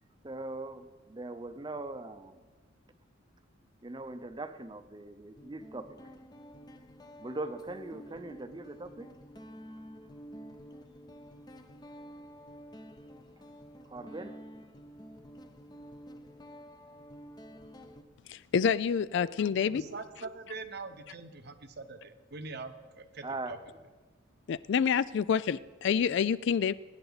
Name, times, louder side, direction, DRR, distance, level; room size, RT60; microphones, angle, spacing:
voice 1, 0.2-2.4 3.8-6.0 7.2-9.1 13.9-14.4 23.2-23.5, right 2 dB, 20° right, 9 dB, 0.7 m, -40 dB
Guitar, 4.3-4.4 5.4-18.0, equal, 20° left, 0.7 m, -50 dB
voice 2, 18.3-19.8 24.5-26.7, left 7 dB, 60° left, 18 dB, 0.3 m, -27 dB
voice 3, 19.6-23.6, right 3 dB, 55° right, 8 dB, 0.9 m, -43 dB
23.0 x 9.6 x 4.0 m, 1.3 s
head